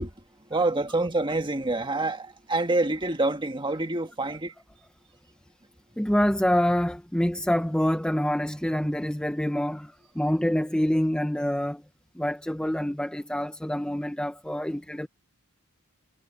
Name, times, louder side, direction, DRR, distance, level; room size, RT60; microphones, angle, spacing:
voice 1, 0.0-4.5, right 2 dB, 20° right, 1.7 m, -27 dB
voice 2, 6.0-11.8 12.1-15.1, equal, 5° left, 1.0 m, -26 dB
head